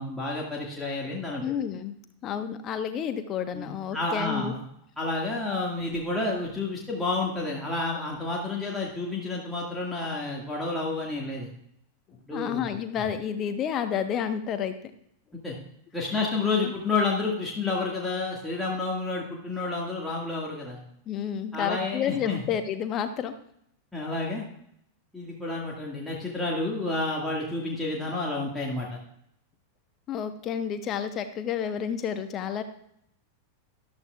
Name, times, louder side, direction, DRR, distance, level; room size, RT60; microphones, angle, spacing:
voice 1, 0.0-1.4 3.5-4.6 5.0-11.5 12.3-12.7 15.4-15.5 15.9-20.8 21.5-22.4 23.9-24.4 25.1-29.0, left 3 dB, 5° left, -4 dB, 2.0 m, -30 dB
voice 2, 1.4-1.9 2.2-4.5 12.3-14.7 16.6-16.7 21.1-23.3 30.1-32.6, left 8 dB, 30° left, 9 dB, 1.1 m, -30 dB
13.5 x 11.5 x 2.4 m, 0.72 s
figure-of-eight pair, 90°, 0 cm